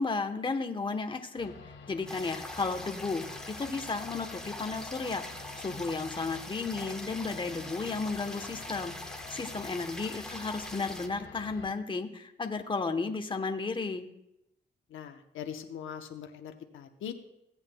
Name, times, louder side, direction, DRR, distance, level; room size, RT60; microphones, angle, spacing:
voice 1, 0.0-14.1, left 4 dB, 25° left, 5 dB, 1.0 m, -34 dB
sound 1, 1.4-11.7, left 4 dB, 65° left, 2.0 m, -49 dB
sound 2, 2.1-11.1, left 1 dB, 5° left, 1.2 m, -43 dB
voice 2, 14.9-17.1, left 8 dB, 80° left, 5 dB, 0.9 m, -41 dB
17.0 x 8.1 x 2.3 m, 0.83 s
cardioid pair, 75°, 20 cm